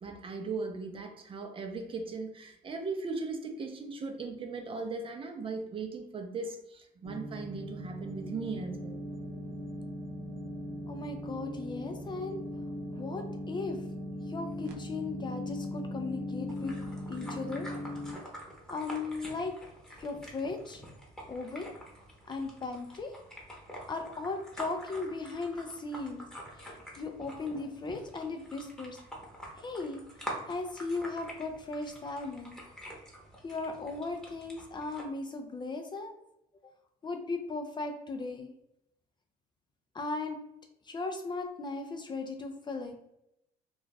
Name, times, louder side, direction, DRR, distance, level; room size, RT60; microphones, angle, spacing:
voice 1, 0.0-9.0, right 4 dB, 30° right, 4 dB, 0.5 m, -38 dB
sound 1, 7.0-18.1, left 1 dB, 85° right, 0.6 m, -39 dB
voice 2, 10.9-12.4 12.9-13.8 14.3-16.8 17.1-17.7 18.7-19.5 20.0-20.8 21.3-21.7 22.3-23.2 23.9-26.3 26.6-29.0 29.6-30.0 30.5-32.6 33.4-36.1 37.0-38.5 39.9-40.4 40.8-43.0, left 3 dB, 25° left, 5 dB, 0.4 m, -37 dB
sound 2, 16.5-35.0, equal, 5° left, 0.9 m, -47 dB
2.4 x 2.3 x 3.9 m, 0.83 s
cardioid pair, 110°, 17 cm